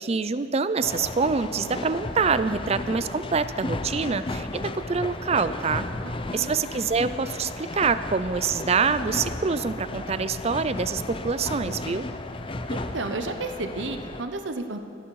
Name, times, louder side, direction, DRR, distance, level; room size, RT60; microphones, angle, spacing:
voice 1, 0.0-5.9 6.3-12.1, right 5 dB, 35° right, 13 dB, 0.5 m, -26 dB
sound 1, 0.8-14.2, left 2 dB, 30° left, 0.7 m, -34 dB
voice 2, 6.0-6.5 12.7-14.8, right 2 dB, 70° right, 7 dB, 0.9 m, -32 dB
25.5 x 10.5 x 4.8 m, 2.4 s
head